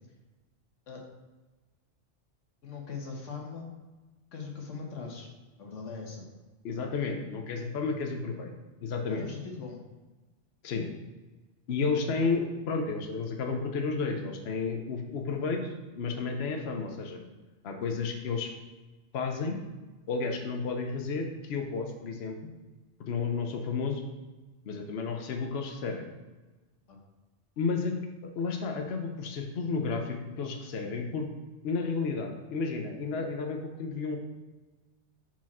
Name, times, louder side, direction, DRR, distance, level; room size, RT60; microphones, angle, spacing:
voice 1, 2.6-3.7 4.3-5.3 5.6-6.2 9.1-9.8 26.9-27.0, left 5 dB, 90° left, 1 dB, 1.4 m, -40 dB
voice 2, 6.6-8.5 8.8-9.3 10.6-10.9 11.7-17.2 17.6-18.5 19.1-19.6 20.1-22.4 23.1-24.0 24.7-26.1 27.6-27.9 28.4-31.3 31.6-34.2, left 4 dB, 60° left, 3 dB, 0.9 m, -32 dB
5.8 x 4.9 x 4.2 m, 1.2 s
omnidirectional pair, 1.2 m